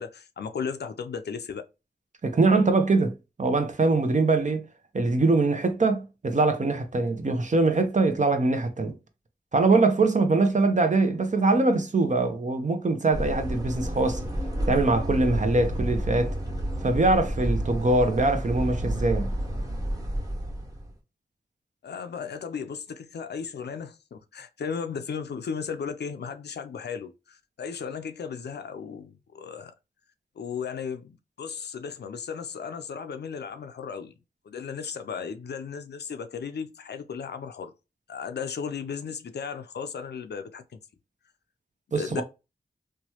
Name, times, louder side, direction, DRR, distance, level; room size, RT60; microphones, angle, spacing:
voice 1, 0.0-1.7 21.8-29.7 30.4-34.1 34.5-37.7 38.1-40.8 41.9-42.2, left 6 dB, 75° left, 0.4 m, -35 dB
voice 2, 2.2-4.6 4.9-8.9 9.5-14.2 14.7-16.3 16.8-19.3 41.9-42.2, right 3 dB, 45° right, 0.7 m, -23 dB
sound 1, 13.1-20.9, equal, 20° right, 1.4 m, -30 dB
3.0 x 2.2 x 2.8 m
cardioid pair, 45°, 17 cm